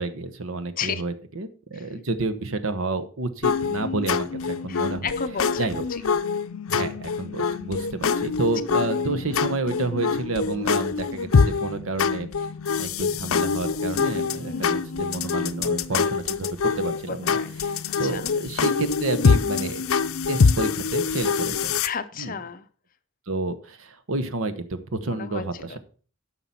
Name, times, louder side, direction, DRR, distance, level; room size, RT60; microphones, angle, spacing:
voice 1, 0.0-5.1 5.6-5.8 6.7-12.3 12.8-17.4 18.0-19.8 20.3-21.8 22.2-22.4 23.3-25.8, right 2 dB, 75° right, 12 dB, 1.0 m, -30 dB
sound 1, 3.4-21.9, left 5 dB, 75° left, 0.5 m, -25 dB
voice 2, 4.7-6.0 14.4-14.9 17.1-18.4 21.8-22.7 25.0-25.8, left 6 dB, 40° left, 11 dB, 0.7 m, -34 dB
9.5 x 5.9 x 5.7 m, 0.41 s
head